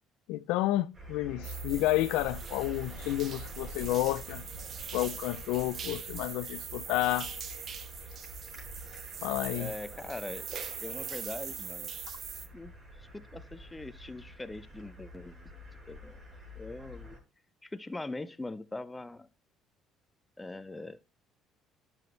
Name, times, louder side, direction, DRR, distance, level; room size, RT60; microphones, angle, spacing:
voice 1, 0.3-4.4 4.9-7.3 9.2-9.7, left 16 dB, 85° left, 0.4 m, -30 dB
sound 1, 0.9-17.2, right 1 dB, 30° right, 5.8 m, -47 dB
sound 2, 1.4-12.5, right 7 dB, 50° right, 1.1 m, -42 dB
voice 2, 9.5-11.9 12.5-12.7 13.0-15.3 15.9-16.2 16.6-17.2 17.6-19.3 20.4-21.0, left 2 dB, 15° left, 0.8 m, -42 dB
10.5 x 6.1 x 3.2 m
supercardioid pair, 85°, 0 cm